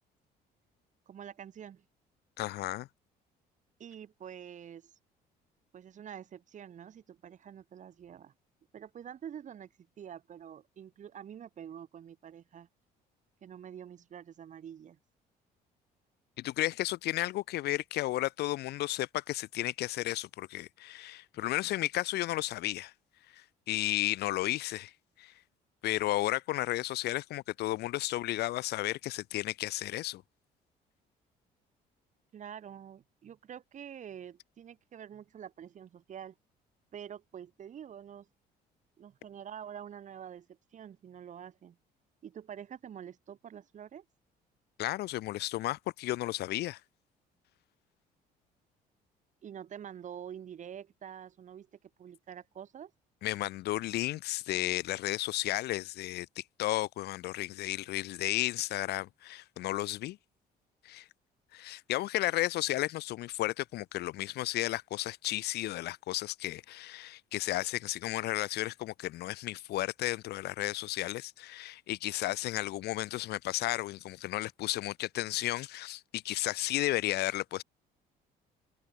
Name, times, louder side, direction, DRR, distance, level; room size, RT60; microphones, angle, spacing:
voice 1, 1.1-1.8 3.8-4.9 5.7-8.3 8.7-9.7 10.0-12.7 13.4-15.0 32.3-36.3 36.9-38.3 39.0-41.8 42.2-44.0 49.4-52.9, right 9 dB, 45° right, 2.4 m, -47 dB
voice 2, 2.4-2.9 16.4-22.9 23.3-24.9 25.2-25.3 25.8-30.2 44.8-46.8 53.2-60.2 60.8-61.1 61.5-77.6, left 16 dB, 75° left, 1.6 m, -33 dB
cardioid pair, 110°, 17 cm